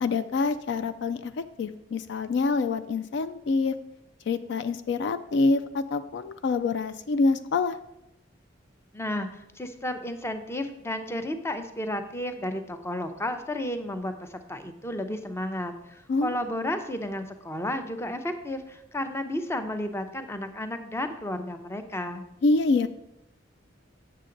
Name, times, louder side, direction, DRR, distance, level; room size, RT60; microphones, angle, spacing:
voice 1, 0.0-1.3 1.6-3.7 4.3-7.8 16.1-16.4 22.4-22.9, left 3 dB, 65° left, 11 dB, 0.4 m, -26 dB
voice 2, 8.9-22.2, left 1 dB, 15° left, 8 dB, 0.6 m, -32 dB
8.0 x 6.6 x 3.8 m, 0.84 s
head